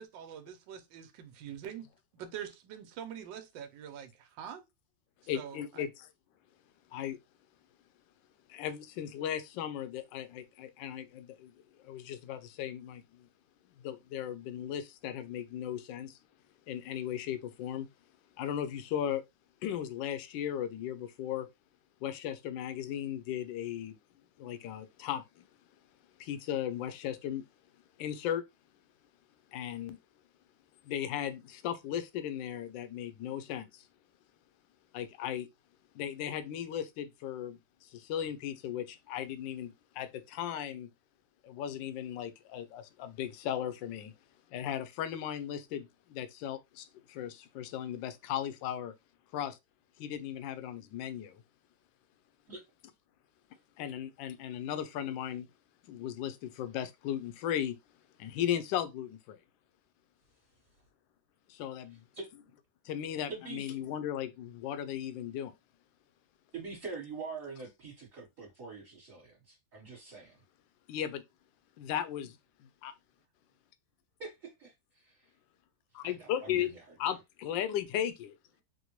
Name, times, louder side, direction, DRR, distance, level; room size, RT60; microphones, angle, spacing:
voice 1, 0.0-1.9 2.1-4.6 5.3-5.9, right 9 dB, 70° right, 1.3 m, -44 dB
voice 2, 5.3-6.1 6.9-7.2 8.5-11.5 11.8-13.3 13.8-16.2 16.7-17.9 18.4-19.2 19.6-21.5 22.0-24.0 24.4-25.5 26.2-27.5 28.0-28.4 29.5-30.0 30.9-33.8 34.9-35.5 35.9-40.9 41.4-44.1 44.5-48.9 49.3-49.6 50.0-51.4 53.8-55.5 55.9-57.8 58.2-59.4 61.5-62.0 62.8-65.5 70.9-71.2 71.8-72.4 72.8-72.9 75.9-76.7 77.0-78.4, left 10 dB, 75° left, 1.2 m, -36 dB
voice 3, 63.3-63.7 66.5-70.4 74.2-75.3 76.0-76.8, right 4 dB, 45° right, 1.5 m, -44 dB
4.0 x 2.1 x 3.0 m
omnidirectional pair, 2.2 m